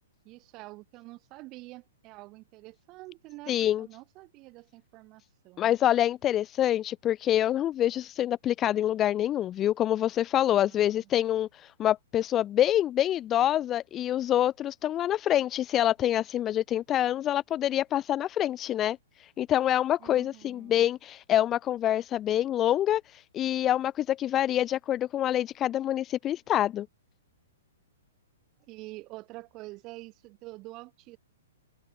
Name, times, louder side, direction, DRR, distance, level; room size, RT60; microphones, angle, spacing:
voice 1, 0.3-5.8 10.6-11.1 20.0-20.8 28.7-31.2, right 21 dB, 35° right, 5.2 m, -47 dB
voice 2, 3.5-3.9 5.6-26.9, left 12 dB, 25° left, 0.5 m, -26 dB
open air
hypercardioid pair, 130°, 0 cm